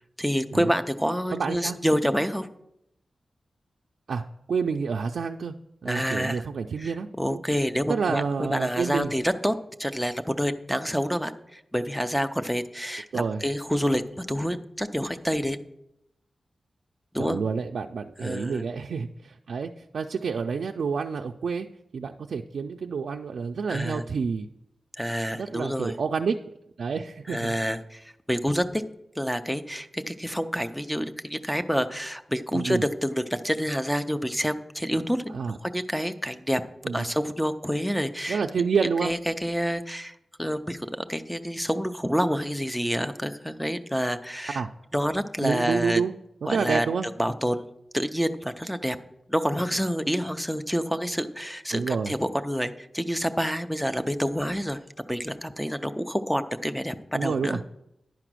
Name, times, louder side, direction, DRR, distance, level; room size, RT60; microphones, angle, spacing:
voice 1, 0.2-2.5 5.9-6.5 6.8-8.2 8.5-9.5 9.8-15.6 17.1-17.4 18.2-18.6 23.7-24.0 25.0-26.0 27.3-28.8 29.2-36.6 36.9-38.4 39.0-40.8 41.1-44.6 44.9-46.0 46.5-46.9 47.2-47.6 47.9-49.0 49.3-54.8 55.1-57.6, equal, ahead, 9 dB, 0.4 m, -28 dB
voice 2, 1.3-1.8 4.1-4.2 4.5-5.5 5.8-7.4 7.9-9.1 13.1-13.4 17.2-21.7 21.9-24.5 25.3-26.4 26.8-27.6 32.5-32.8 35.3-35.5 36.8-37.0 38.3-39.1 44.5-44.7 45.4-46.1 46.4-47.1 51.7-52.1 57.1-57.6, right 5 dB, 90° right, 3 dB, 0.3 m, -28 dB
10.5 x 4.9 x 6.1 m, 0.83 s
wide cardioid pair, 175°, 0 cm